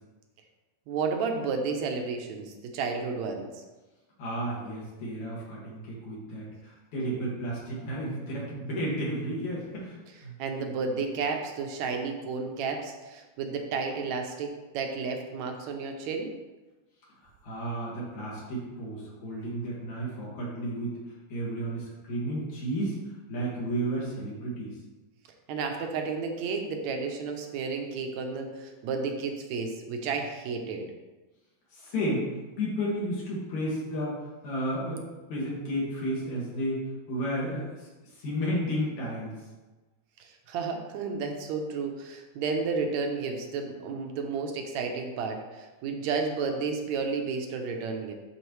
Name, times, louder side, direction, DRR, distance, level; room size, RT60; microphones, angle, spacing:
voice 1, 0.9-3.5 10.4-16.3 25.5-30.9 40.2-48.1, right 4 dB, 75° right, 3 dB, 1.9 m, -32 dB
voice 2, 4.2-10.3 17.4-21.0 21.3-23.0 23.3-24.7 31.7-32.2 32.6-34.2 34.4-35.0 35.3-36.8 37.1-39.4, equal, 70° left, -6 dB, 3.3 m, -32 dB
11.0 x 4.2 x 3.1 m, 1.2 s
omnidirectional pair, 3.5 m